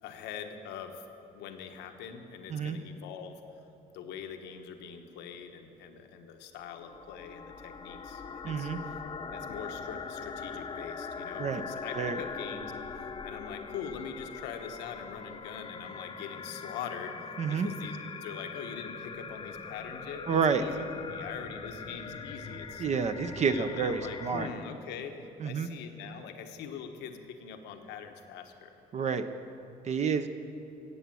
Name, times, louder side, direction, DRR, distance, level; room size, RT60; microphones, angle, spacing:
voice 1, 0.0-1.1 1.3-3.4 3.9-8.7 9.3-17.1 17.5-22.9 23.4-25.2 25.4-28.7, left 7 dB, 90° left, 6 dB, 1.1 m, -43 dB
sound 1, 6.7-24.5, left 5 dB, 30° left, 0.8 m, -42 dB
voice 2, 8.4-8.8 11.4-11.6 11.9-12.2 17.4-17.7 20.3-20.6 22.8-24.5 25.4-25.7 28.9-29.3 29.8-30.3, right 6 dB, 40° right, 9 dB, 0.8 m, -29 dB
15.0 x 8.3 x 7.6 m, 2.8 s
cardioid pair, 110°, 17 cm